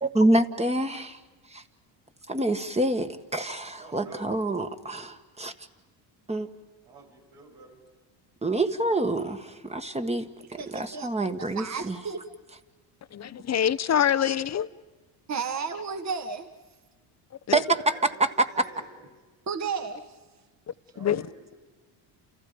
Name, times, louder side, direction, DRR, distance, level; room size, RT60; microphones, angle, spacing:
voice 1, 0.0-1.2 1.5-1.6 2.3-5.5 6.3-6.5 8.4-12.0 17.5-17.6 18.4-18.5, right 1 dB, 15° right, 7 dB, 1.7 m, -27 dB
voice 2, 3.8-4.4 6.9-7.8 17.6-19.2 20.9-21.6, right 5 dB, 85° right, -1 dB, 7.2 m, -47 dB
voice 3, 10.5-11.1 11.4-12.2 15.3-16.5 19.5-20.0, right 5 dB, 35° right, 6 dB, 1.9 m, -32 dB
voice 4, 13.1-14.7 17.5-17.6 21.0-21.3, left 9 dB, 35° left, 15 dB, 0.9 m, -25 dB
30.0 x 29.0 x 5.2 m, 1.2 s
supercardioid pair, 80°, 47 cm